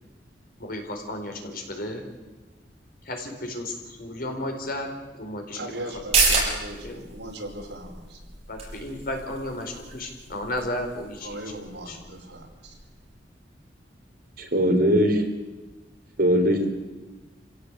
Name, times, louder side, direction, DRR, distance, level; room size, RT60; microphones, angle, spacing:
voice 1, 0.6-2.1 3.0-4.9 5.2-5.6 6.3-6.4 6.7-7.0 8.5-11.4 11.9-12.0, left 1 dB, 55° left, 3 dB, 4.4 m, -33 dB
voice 2, 5.6-8.2 11.2-12.8, right 1 dB, 75° right, 1 dB, 4.8 m, -38 dB
sound 1, 5.9-13.1 13.4-13.5, right 4 dB, 35° right, 6.9 m, -30 dB
voice 3, 14.4-15.3 16.2-16.7, equal, 55° right, 3 dB, 4.0 m, -20 dB
27.0 x 16.5 x 8.3 m, 1.2 s
head